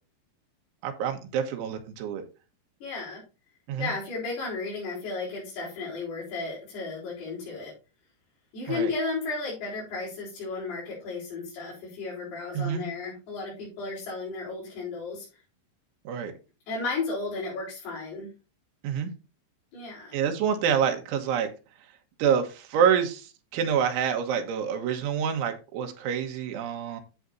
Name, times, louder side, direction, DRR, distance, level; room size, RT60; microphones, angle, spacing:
voice 1, 0.8-2.3 3.7-3.9 8.7-8.9 12.5-12.9 16.1-16.3 18.8-19.1 20.1-21.5 22.2-27.0, right 8 dB, 85° right, 4 dB, 3.8 m, -27 dB
voice 2, 2.8-3.2 3.8-7.7 8.5-15.3 16.7-18.3 19.7-20.2, left 3 dB, 60° left, -7 dB, 5.7 m, -34 dB
11.0 x 7.5 x 2.7 m, 0.31 s
omnidirectional pair, 5.3 m